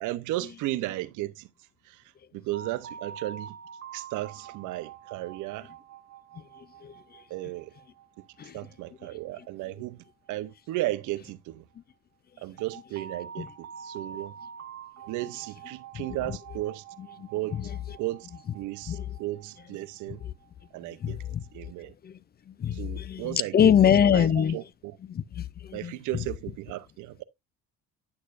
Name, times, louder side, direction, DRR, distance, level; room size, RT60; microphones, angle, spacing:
voice 1, 0.0-1.5 1.9-2.0 2.3-3.6 3.9-5.7 7.3-7.7 8.5-11.6 12.4-14.3 15.1-16.8 17.3-17.7 18.0-18.3 18.5-20.2 20.7-21.2 21.5-21.9 22.7-23.7 24.1-24.6 25.7-27.2, right 17 dB, 85° right, 0.7 m, -34 dB
sound 1, 2.5-11.3 12.6-21.7, right 7 dB, 60° right, 1.2 m, -47 dB
voice 2, 17.0-17.8 18.9-19.2 20.1-20.3 21.0-21.4 22.0-22.2 22.5-24.6 25.1-26.3, left 9 dB, 35° left, 0.4 m, -25 dB
9.5 x 6.6 x 2.4 m
cardioid pair, 100°, 30 cm